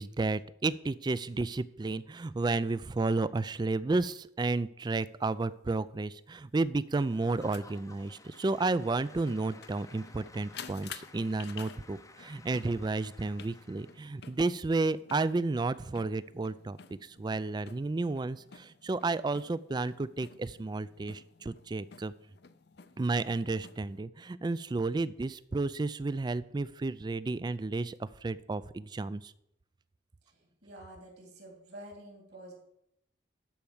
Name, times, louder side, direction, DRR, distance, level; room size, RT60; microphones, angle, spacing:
voice 1, 0.0-22.1 23.0-29.3, right 3 dB, 25° right, 17 dB, 0.3 m, -32 dB
sound 1, 4.8-4.9 6.9-24.0, left 7 dB, 60° left, 0.6 m, -52 dB
Applause / Crowd, 6.9-14.2, left 3 dB, 20° left, 0.6 m, -55 dB
voice 2, 30.6-32.5, right 1 dB, 60° right, 1 dB, 3.3 m, -48 dB
12.0 x 4.6 x 7.1 m, 0.78 s
head